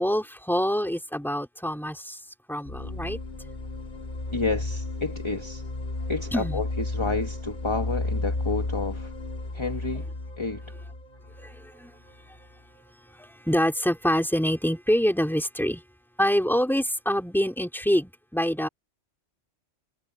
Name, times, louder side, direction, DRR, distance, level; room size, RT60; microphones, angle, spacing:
voice 1, 0.0-2.2 2.5-3.2 6.3-6.6 11.4-11.9 13.2-15.8 16.2-18.7, equal, ahead, 2.9 m, -25 dB
sound 1, 2.6-12.4, left 2 dB, 40° left, 2.1 m, -33 dB
voice 2, 4.3-5.6 6.1-9.1 9.5-10.1 10.4-10.6, left 3 dB, 25° left, 1.4 m, -30 dB
omnidirectional pair, 1.2 m